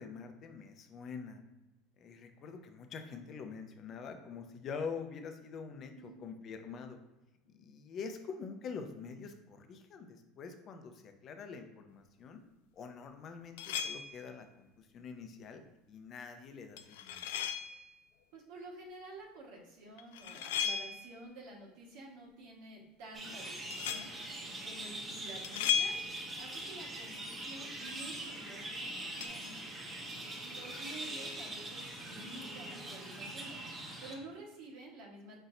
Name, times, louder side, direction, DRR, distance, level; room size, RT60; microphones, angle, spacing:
voice 1, 0.0-1.4 2.0-7.0 7.5-12.4 12.7-15.6 15.9-17.3, left 5 dB, 45° left, 6 dB, 0.6 m, -45 dB
sound 1, 13.6-14.3 16.8-17.9 20.0-21.2 23.7-24.2 25.4-26.5 29.2-29.3, left 7 dB, 80° left, 0.3 m, -36 dB
voice 2, 18.3-24.3 24.6-25.9 26.4-29.6 30.3-33.6 34.0-35.4, right 2 dB, 70° right, -1 dB, 1.3 m, -50 dB
sound 2, 23.1-34.1, right 1 dB, 20° right, 1.1 m, -43 dB
4.5 x 4.1 x 2.6 m, 0.99 s
supercardioid pair, 100°, 0 cm